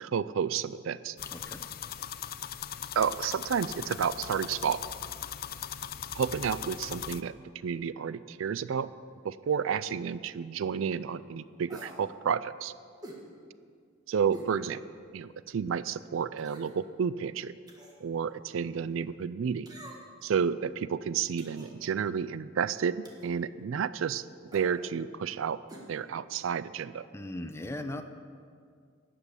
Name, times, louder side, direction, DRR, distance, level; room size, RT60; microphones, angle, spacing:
voice 1, 0.0-1.2 2.9-4.8 6.1-7.3 7.6-8.9 9.2-12.7 14.1-14.8 15.1-17.5 18.0-19.7 20.2-24.3 24.5-25.6 25.9-27.1, right 7 dB, 75° right, 16 dB, 0.4 m, -31 dB
sound 1, 1.2-7.2, left 9 dB, 45° left, 0.4 m, -39 dB
voice 2, 1.3-1.6 27.1-28.0, left 1 dB, 15° left, 7 dB, 0.7 m, -38 dB
sound 2, 11.7-12.0 13.0-13.2 14.3-14.5 15.0-15.1 16.4-16.8 17.7-18.0 19.7-20.2 21.4-21.7 23.0-23.3 24.5-24.7 25.7-25.9 26.1-26.2, right 1 dB, 20° right, 1.7 m, -46 dB
12.5 x 8.3 x 8.2 m, 2.2 s
head